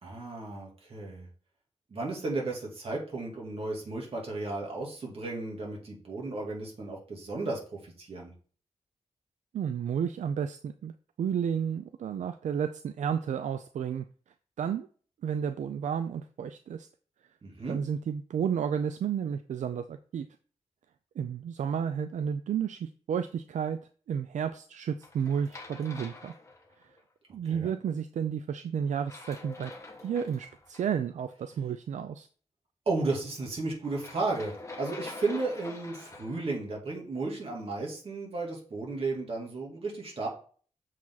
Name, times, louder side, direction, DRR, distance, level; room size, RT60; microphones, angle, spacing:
voice 1, 0.0-1.3 1.9-8.3 17.4-17.8 27.4-27.7 32.9-40.3, right 3 dB, 50° right, -2 dB, 2.8 m, -34 dB
voice 2, 9.5-10.9 11.2-14.0 14.6-14.9 15.2-16.9 17.7-20.3 21.2-23.8 24.1-26.3 26.8-26.9 27.3-29.7 30.0-32.3, right 8 dB, 75° right, 10 dB, 0.4 m, -32 dB
sound 1, 25.0-27.0 28.9-30.8 33.8-36.5, left 3 dB, 25° left, 1.3 m, -45 dB
7.2 x 5.0 x 4.0 m, 0.42 s
wide cardioid pair, 125°, 12 cm